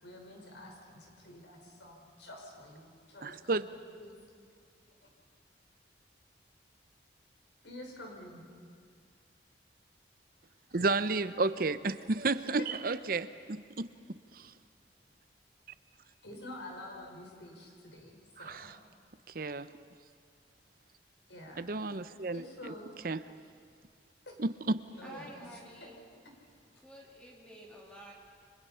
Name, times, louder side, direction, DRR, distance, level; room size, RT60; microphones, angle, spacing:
voice 1, 0.0-4.1 5.0-5.1 7.6-8.5 10.7-10.9 12.7-12.8 16.2-18.8 21.3-21.8 22.3-22.9 24.3-24.4 24.9-25.9, left 1 dB, 80° left, 1 dB, 5.5 m, -49 dB
voice 2, 3.2-3.6 10.7-13.9 14.3-14.5 18.4-18.7 19.3-19.7 21.6-22.4 23.0-23.2 24.4-24.8, right 3 dB, 50° right, 13 dB, 0.8 m, -32 dB
voice 3, 25.0-26.0 26.8-28.1, right 1 dB, 5° left, -2 dB, 2.8 m, -50 dB
29.5 x 24.5 x 5.7 m, 2.3 s
head